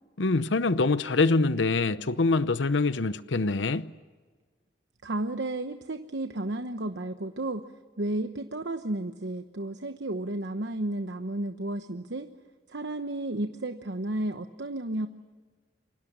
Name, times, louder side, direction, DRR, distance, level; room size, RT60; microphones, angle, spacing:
voice 1, 0.2-3.9, left 3 dB, 90° left, 0.8 m, -25 dB
voice 2, 5.0-7.6 8.0-12.3 12.7-15.1, right 1 dB, 75° right, 1.1 m, -32 dB
28.5 x 24.5 x 7.5 m
head